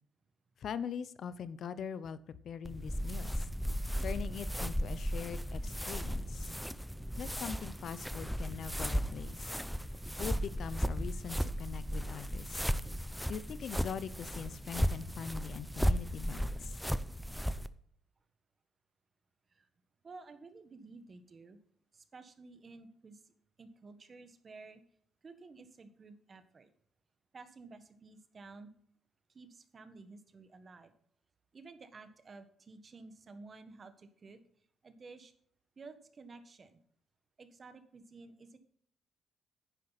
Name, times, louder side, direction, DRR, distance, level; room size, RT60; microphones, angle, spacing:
voice 1, 0.6-3.4 4.0-6.6 7.2-9.6 10.2-12.7 13.3-16.7, left 7 dB, 60° left, 16 dB, 0.7 m, -42 dB
sound 1, 2.6-17.7, equal, ahead, 0.6 m, -35 dB
voice 2, 20.0-21.6 21.9-24.8 25.2-26.7 27.3-28.7 29.3-30.9 31.5-35.3 35.8-36.8 37.4-38.6, right 3 dB, 40° right, 10 dB, 1.5 m, -53 dB
10.0 x 9.9 x 4.1 m, 0.63 s
cardioid pair, 90°, 0 cm